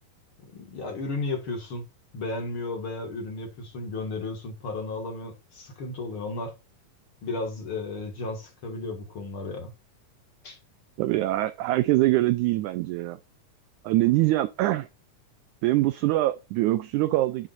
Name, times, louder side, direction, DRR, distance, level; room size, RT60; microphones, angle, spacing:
voice 1, 0.4-1.9 2.1-6.5 7.2-9.7 10.4-10.6, left 3 dB, 45° left, 2.2 m, -34 dB
voice 2, 11.0-13.2 13.8-14.9 15.6-17.5, right 17 dB, 85° right, 1.7 m, -23 dB
8.9 x 7.4 x 2.5 m
omnidirectional pair, 4.0 m